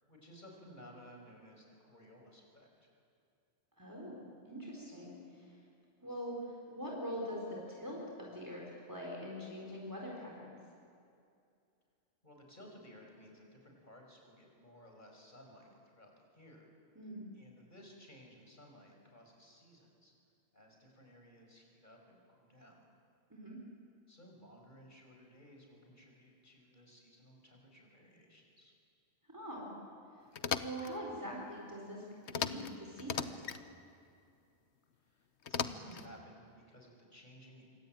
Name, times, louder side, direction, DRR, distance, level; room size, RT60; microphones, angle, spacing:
voice 1, 0.1-2.7 12.2-16.7 17.3-20.1 20.5-22.8 24.1-28.7 35.0-37.6, equal, 45° left, 1 dB, 5.8 m, -57 dB
voice 2, 3.8-5.5 6.0-8.6 8.9-10.5 17.0-17.3 23.3-23.6 29.3-29.7 30.6-33.4, equal, 15° right, -3 dB, 4.3 m, -43 dB
sound 1, 30.3-30.9 32.3-32.7 33.0-33.6 35.4-36.1, left 7 dB, 85° left, 1.2 m, -37 dB
26.0 x 24.0 x 9.2 m, 2.5 s
omnidirectional pair, 1.1 m